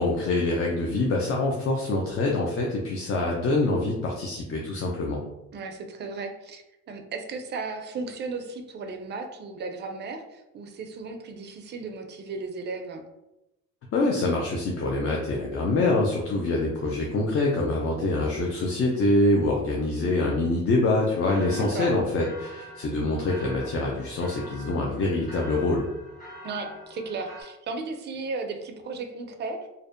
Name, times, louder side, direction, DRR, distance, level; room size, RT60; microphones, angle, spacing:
voice 1, 0.0-5.2 13.9-25.9, left 2 dB, 50° left, -1 dB, 0.4 m, -25 dB
voice 2, 5.5-13.0 21.4-21.9 26.4-29.7, right 3 dB, 35° right, 6 dB, 0.4 m, -35 dB
sound 1, 21.0-27.4, right 1 dB, 30° left, 1.2 m, -44 dB
2.5 x 2.1 x 2.4 m, 0.92 s
cardioid pair, 90°, 30 cm